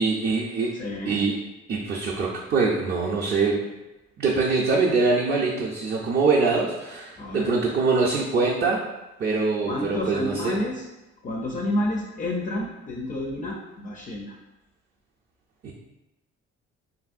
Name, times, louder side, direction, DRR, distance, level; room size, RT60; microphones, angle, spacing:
voice 1, 0.0-0.7 1.1-1.3 1.7-3.6 4.2-8.8 9.2-10.6 15.6-15.7, right 4 dB, 35° right, -4 dB, 0.4 m, -23 dB
voice 2, 0.7-1.2 7.2-7.5 9.6-10.9 11.2-14.4, left 1 dB, 30° left, 0 dB, 0.4 m, -30 dB
3.0 x 2.5 x 2.4 m, 1.0 s
cardioid pair, 90°, 30 cm